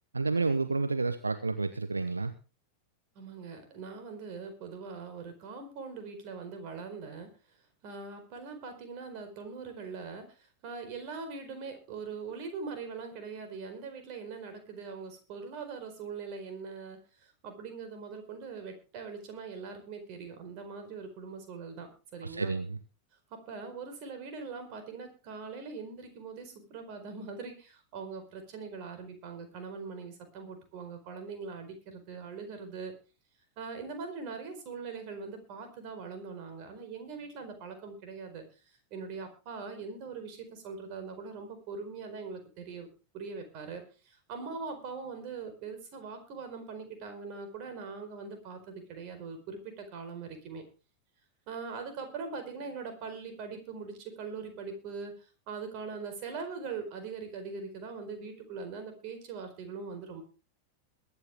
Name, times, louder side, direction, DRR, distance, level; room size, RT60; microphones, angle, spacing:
voice 1, 0.1-2.3 22.2-22.8, right 3 dB, 80° right, 10 dB, 0.9 m, -30 dB
voice 2, 3.1-7.3 7.8-22.5 23.3-32.9 33.6-38.4 38.9-42.9 43.1-50.6 51.5-55.1 55.5-60.2, right 5 dB, 45° right, 7 dB, 4.6 m, -42 dB
22.0 x 9.7 x 3.6 m, 0.34 s
figure-of-eight pair, 90°, 0 cm